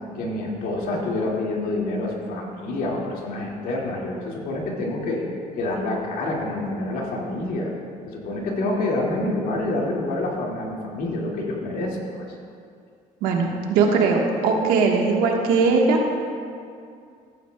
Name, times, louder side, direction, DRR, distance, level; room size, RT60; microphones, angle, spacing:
voice 1, 0.2-5.2 5.6-7.7 8.1-12.2, left 2 dB, 75° left, -2 dB, 2.1 m, -27 dB
voice 2, 13.2-16.0, right 4 dB, 90° right, 1 dB, 1.3 m, -20 dB
15.0 x 8.9 x 2.2 m, 2.3 s
cardioid pair, 100°, 15 cm